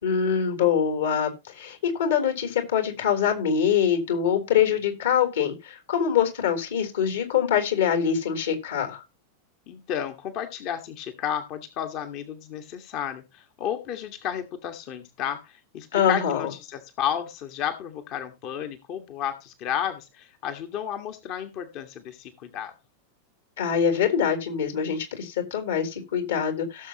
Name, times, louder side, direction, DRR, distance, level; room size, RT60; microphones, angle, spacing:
voice 1, 0.0-9.0 15.9-16.5 23.6-26.9, left 8 dB, 60° left, 5 dB, 3.7 m, -24 dB
voice 2, 9.7-22.7, left 9 dB, 40° left, 6 dB, 1.6 m, -32 dB
17.5 x 7.3 x 3.0 m, 0.25 s
figure-of-eight pair, 90°, 0 cm